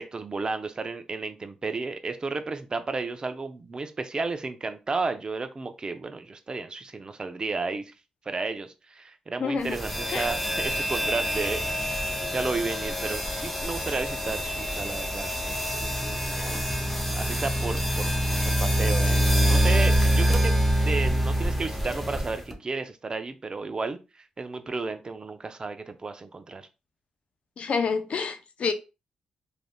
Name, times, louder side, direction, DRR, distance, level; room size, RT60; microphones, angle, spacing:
voice 1, 0.0-7.9 8.3-26.7, right 3 dB, 35° right, 0.5 m, -33 dB
voice 2, 9.4-9.8 10.1-10.3 27.6-28.7, left 5 dB, 60° left, 0.5 m, -28 dB
sound 1, 9.7-22.5, equal, 5° left, 0.7 m, -26 dB
3.2 x 2.5 x 2.2 m
cardioid pair, 65°, 2 cm